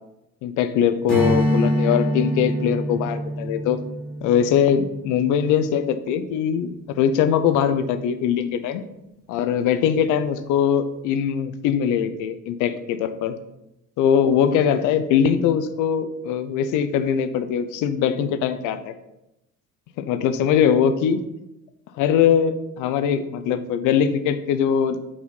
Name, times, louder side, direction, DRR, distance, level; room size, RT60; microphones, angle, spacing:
voice 1, 0.4-3.8 4.2-8.8 9.3-13.3 14.0-18.9 20.0-21.2 21.9-25.0, left 8 dB, 45° left, 10 dB, 0.6 m, -21 dB
Strum, 1.1-5.9, equal, ahead, 2.4 m, -25 dB
5.8 x 4.2 x 5.4 m, 0.89 s
figure-of-eight pair, 60°, 46 cm